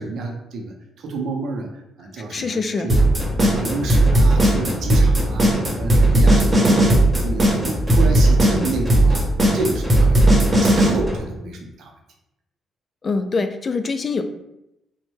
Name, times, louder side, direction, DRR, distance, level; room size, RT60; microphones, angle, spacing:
voice 1, 0.0-1.7 2.0-3.1 3.4-6.9 7.2-9.2 9.5-10.3 10.6-11.9, right 3 dB, 70° right, 2 dB, 0.6 m, -29 dB
voice 2, 2.2-2.9 13.0-14.2, left 4 dB, 40° left, 8 dB, 0.3 m, -24 dB
sound 1, 2.9-10.9, right 1 dB, 30° right, 0.9 m, -15 dB
sound 2, 3.0-11.2, equal, 5° right, 0.8 m, -28 dB
3.0 x 2.1 x 3.2 m, 0.86 s
cardioid pair, 90°, 0 cm